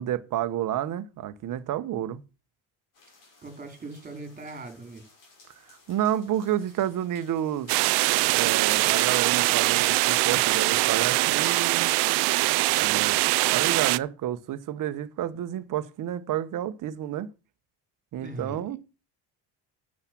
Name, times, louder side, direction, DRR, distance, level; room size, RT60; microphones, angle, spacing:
voice 1, 0.0-2.2 5.7-7.7 8.3-11.9 12.8-13.2 13.5-17.3 18.1-18.8, right 11 dB, 55° right, 1.2 m, -30 dB
sound 1, 2.9-8.1, left 3 dB, 55° left, 6.1 m, -57 dB
voice 2, 3.4-5.1 18.2-18.7, right 2 dB, 20° right, 3.8 m, -40 dB
sound 2, 7.7-14.0, right 23 dB, 80° right, 0.6 m, -23 dB
9.9 x 7.6 x 6.0 m
cardioid pair, 135°, 39 cm